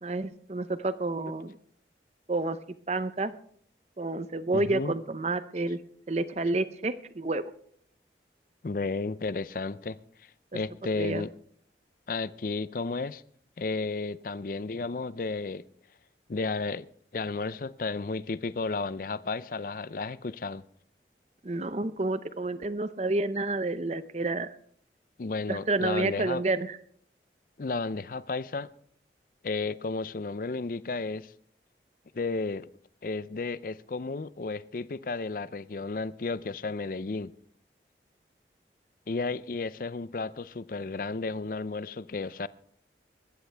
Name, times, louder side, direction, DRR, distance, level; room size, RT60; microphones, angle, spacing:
voice 1, 0.0-1.6 2.3-2.6 2.9-3.3 4.0-5.8 6.1-7.5 10.5-10.6 11.0-11.3 21.4-24.5 25.5-26.8, right 2 dB, 40° right, 0.7 m, -29 dB
voice 2, 4.5-4.9 8.6-10.0 10.5-11.3 12.1-13.2 13.6-15.6 16.3-16.8 17.1-20.6 25.2-26.4 27.6-28.7 29.4-31.3 32.1-32.7 33.0-37.3 39.1-42.5, left 3 dB, 50° left, 0.5 m, -33 dB
20.5 x 14.5 x 3.4 m
head